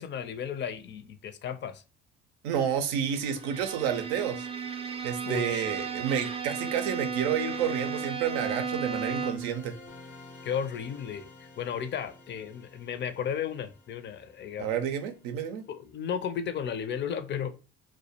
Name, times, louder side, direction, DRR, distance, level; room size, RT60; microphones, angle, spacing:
voice 1, 0.0-1.8 5.2-5.6 10.4-14.7 15.7-17.5, left 8 dB, 40° left, 0.4 m, -34 dB
voice 2, 2.4-4.5 5.0-9.7 14.6-15.6, right 8 dB, 85° right, 0.5 m, -30 dB
Bowed string instrument, 3.1-9.6, right 5 dB, 20° right, 0.4 m, -34 dB
sound 1, 8.9-15.6, left 2 dB, 90° left, 0.7 m, -52 dB
2.2 x 2.1 x 2.7 m
hypercardioid pair, 65°, 29 cm